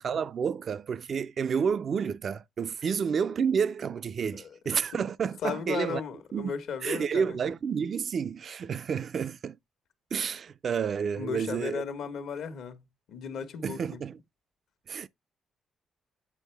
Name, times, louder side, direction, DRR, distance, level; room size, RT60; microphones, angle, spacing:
voice 1, 0.0-6.0 6.3-6.5 6.8-9.6 10.1-11.8 13.6-14.2 14.9-15.1, right 6 dB, 50° right, 0.3 m, -30 dB
voice 2, 5.4-7.4 11.2-12.8 13.1-14.0, left 6 dB, 75° left, 1.2 m, -35 dB
8.2 x 4.5 x 3.3 m
cardioid pair, 90°, 0 cm